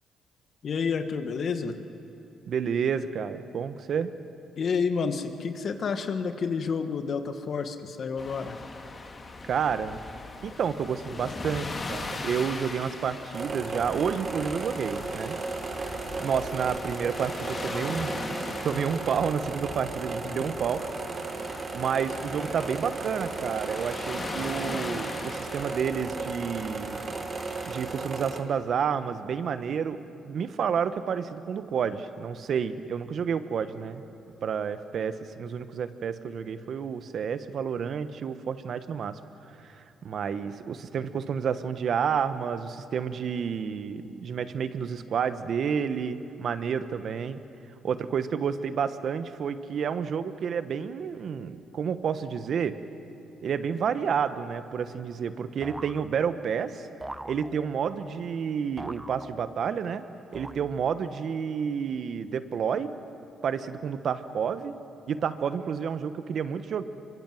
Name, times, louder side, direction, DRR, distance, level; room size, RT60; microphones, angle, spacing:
voice 1, 0.6-1.7 4.6-8.6 20.2-20.4, left 5 dB, 55° left, 8 dB, 1.6 m, -29 dB
voice 2, 2.5-4.1 9.4-10.0 10.4-15.4 16.2-18.1 18.6-21.2 21.7-27.0 27.6-34.1 34.4-39.2 39.6-47.4 47.8-52.8 53.4-56.9 57.2-60.1 60.3-62.9 63.4-64.7 65.1-66.8, right 7 dB, 60° right, 11 dB, 1.2 m, -30 dB
sound 1, 8.2-28.0, left 3 dB, 35° left, 2.2 m, -40 dB
sound 2, 13.3-28.4, right 3 dB, 45° right, 2.3 m, -35 dB
sound 3, 55.6-56.6 57.0-58.0 58.8-59.8 60.3-61.1, right 1 dB, 10° right, 0.6 m, -43 dB
25.0 x 23.0 x 7.8 m, 2.8 s
cardioid pair, 90°, 0 cm